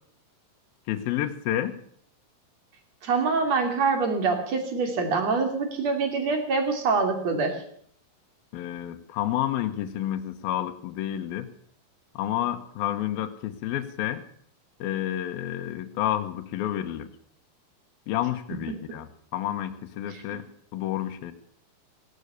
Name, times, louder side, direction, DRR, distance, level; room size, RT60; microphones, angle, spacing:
voice 1, 0.9-1.8 8.5-11.5 12.2-14.2 14.8-17.1 18.1-20.4 20.7-21.3, left 12 dB, 75° left, 7 dB, 2.9 m, -30 dB
voice 2, 3.0-7.6 18.7-18.8 20.1-20.4, right 4 dB, 45° right, 5 dB, 3.5 m, -25 dB
17.0 x 12.0 x 6.7 m, 0.63 s
omnidirectional pair, 4.4 m